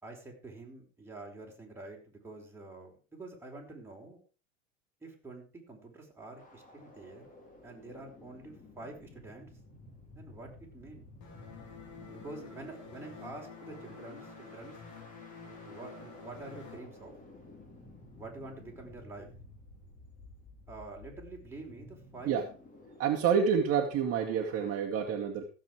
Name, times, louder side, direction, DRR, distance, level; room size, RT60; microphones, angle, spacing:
voice 1, 0.0-4.2 5.0-7.3 7.6-9.5 10.1-11.1 12.1-14.8 15.6-17.2 18.1-19.3 20.7-22.4, right 2 dB, 5° right, -1 dB, 4.6 m, -47 dB
sound 1, 6.4-24.8, left 2 dB, 20° left, 4.2 m, -54 dB
sound 2, 11.2-16.8, left 4 dB, 50° left, 4.2 m, -49 dB
voice 2, 23.0-25.4, right 7 dB, 40° right, 1 dB, 2.1 m, -28 dB
15.5 x 7.7 x 4.8 m, 0.35 s
hypercardioid pair, 90°, 38 cm